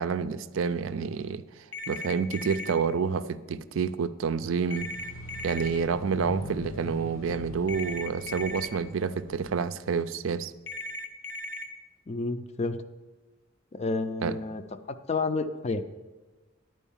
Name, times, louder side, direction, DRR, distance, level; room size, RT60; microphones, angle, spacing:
voice 1, 0.0-4.9 5.4-10.5 14.2-14.4, right 6 dB, 75° right, 12 dB, 0.4 m, -29 dB
sound 1, 1.7-2.7 4.7-5.7 7.7-8.7 10.7-11.7, left 2 dB, 60° left, 0.7 m, -37 dB
sound 2, 4.6-9.5, left 1 dB, 85° left, 1.3 m, -42 dB
voice 2, 12.1-12.8 13.7-14.6 14.9-15.8, left 3 dB, 35° left, 10 dB, 0.4 m, -30 dB
11.0 x 4.6 x 7.1 m, 1.2 s
head